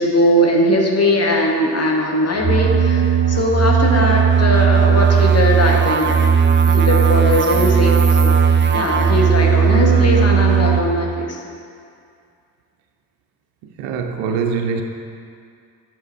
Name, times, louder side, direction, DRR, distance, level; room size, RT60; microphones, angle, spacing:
voice 1, 0.0-6.3 6.6-7.9 8.2-8.3 8.7-11.4, left 1 dB, 35° left, 0 dB, 1.3 m, -19 dB
sound 1, 2.4-10.8, right 6 dB, 25° right, 0.6 m, -15 dB
voice 2, 13.6-14.8, right 6 dB, 80° right, 5 dB, 0.6 m, -23 dB
7.3 x 4.8 x 4.4 m, 2.3 s
hypercardioid pair, 50°, 45 cm